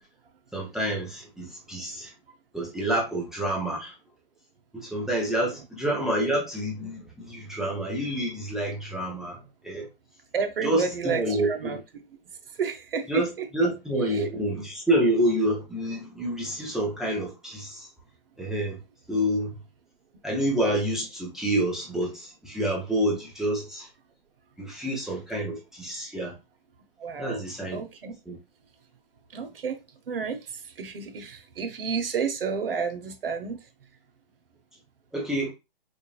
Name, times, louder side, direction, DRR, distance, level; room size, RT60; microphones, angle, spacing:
voice 1, 0.5-2.1 2.5-4.0 4.7-9.9 10.6-11.8 13.1-17.9 18.4-18.8 19.1-19.5 20.2-23.9 24.6-26.3 27.2-27.8 28.3-28.4 35.1-35.5, right 1 dB, ahead, 0.6 m, -28 dB
voice 2, 10.3-11.8 12.6-13.5 14.1-14.2 27.0-27.4 27.7-28.2 29.3-29.8 30.1-33.6, right 6 dB, 75° right, 0.9 m, -31 dB
5.1 x 2.5 x 2.3 m
hypercardioid pair, 145°, 29 cm